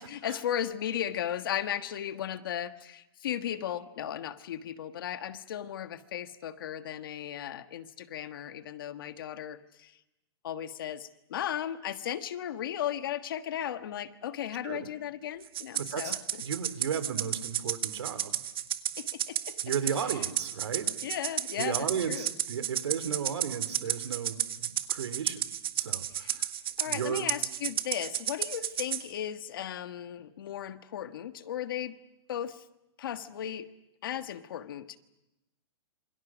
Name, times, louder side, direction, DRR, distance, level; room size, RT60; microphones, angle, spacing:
voice 1, 0.0-9.9 10.4-16.4 19.0-19.6 20.0-20.2 21.0-22.3 26.1-26.4 26.8-31.9 32.3-32.6 33.0-33.7 34.0-35.0, left 10 dB, 55° left, 9 dB, 1.5 m, -36 dB
Rattle (instrument), 15.5-29.0, right 11 dB, 60° right, 1.7 m, -32 dB
voice 2, 15.8-16.1 16.4-18.4 19.6-20.9 21.6-25.4 25.7-26.5 26.8-27.3, right 7 dB, 80° right, 12 dB, 3.4 m, -34 dB
27.5 x 26.5 x 6.3 m, 0.94 s
hypercardioid pair, 170°, 14 cm